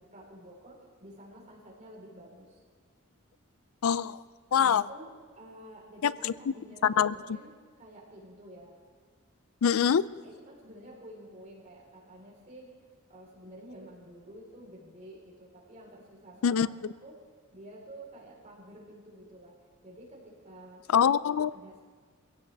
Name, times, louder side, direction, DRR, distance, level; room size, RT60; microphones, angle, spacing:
voice 1, 0.0-2.6 4.6-8.8 10.2-12.8 13.1-16.7 17.0-17.2 17.5-19.6 19.8-20.9 21.5-21.8, right 1 dB, 35° right, -4 dB, 4.2 m, -50 dB
voice 2, 3.8-4.2 4.5-4.8 6.0-6.3 6.8-7.1 9.6-10.1 16.4-16.7 20.9-21.5, left 7 dB, 85° left, 18 dB, 0.4 m, -24 dB
23.0 x 16.0 x 3.5 m, 1.5 s
head